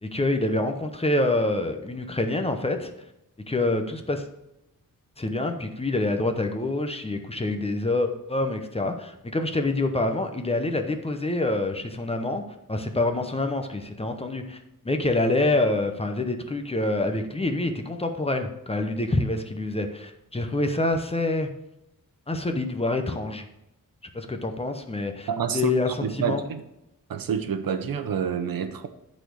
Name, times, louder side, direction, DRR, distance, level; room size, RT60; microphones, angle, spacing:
voice 1, 0.0-2.9 3.5-4.2 5.2-12.4 12.7-14.6 14.8-21.5 22.3-23.4 24.1-25.3 25.5-26.4, left 2 dB, 15° left, 5 dB, 0.8 m, -26 dB
voice 2, 25.3-26.6 27.1-28.9, right 7 dB, 80° right, 9 dB, 0.9 m, -28 dB
11.0 x 4.3 x 6.3 m, 0.86 s
wide cardioid pair, 165°, 34 cm